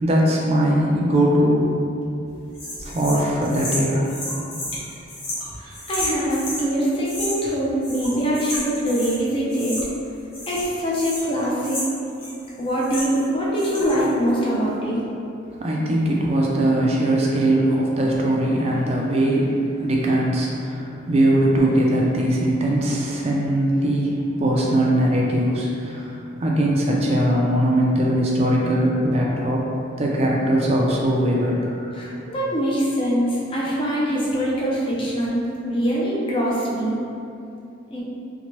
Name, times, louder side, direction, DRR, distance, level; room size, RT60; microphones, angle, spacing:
voice 1, 0.0-1.7 2.8-4.1 5.7-5.8 15.6-29.6 30.0-31.9, right 1 dB, 30° right, -3 dB, 0.3 m, -20 dB
sound 1, 2.6-6.7 7.0-7.6 7.8-9.2 9.5-10.1 10.3-13.3 13.5-14.1, left 1 dB, 85° left, 0.9 m, -32 dB
voice 2, 5.6-9.8 10.5-11.9 12.6-15.0 31.9-36.9 37.9-38.0, equal, 25° left, -6 dB, 0.5 m, -23 dB
2.8 x 2.1 x 3.0 m, 2.7 s
head